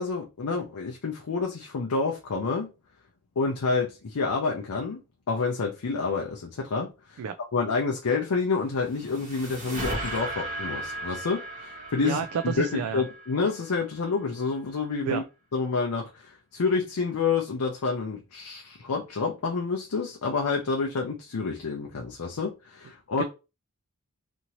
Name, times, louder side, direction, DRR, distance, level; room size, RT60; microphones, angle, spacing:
voice 1, 0.0-2.7 3.4-5.0 5.3-7.2 7.5-15.2 15.5-23.2, left 4 dB, 75° left, 0.5 m, -28 dB
sound 1, 8.5-13.9, right 1 dB, 35° right, 1.1 m, -36 dB
voice 2, 12.0-13.0 15.0-15.2 23.2-23.3, right 7 dB, 80° right, 0.3 m, -29 dB
2.8 x 2.6 x 2.9 m
head